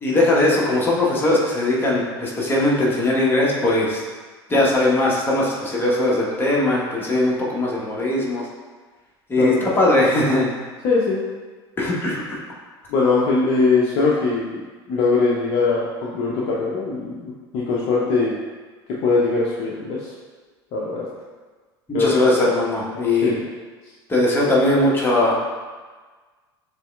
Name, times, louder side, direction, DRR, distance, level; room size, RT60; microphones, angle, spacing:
voice 1, 0.0-4.0 4.5-8.4 9.3-10.5 11.8-12.4 21.9-23.3 24.1-25.4, left 2 dB, 15° left, -5 dB, 1.2 m, -19 dB
voice 2, 9.4-9.8 10.8-11.2 12.9-14.6 14.9-18.4 19.0-20.1 20.7-21.1 21.9-22.5 22.9-23.4, left 4 dB, 45° left, -4 dB, 0.6 m, -21 dB
6.8 x 3.1 x 2.3 m, 1.4 s
figure-of-eight pair, 75°, 14 cm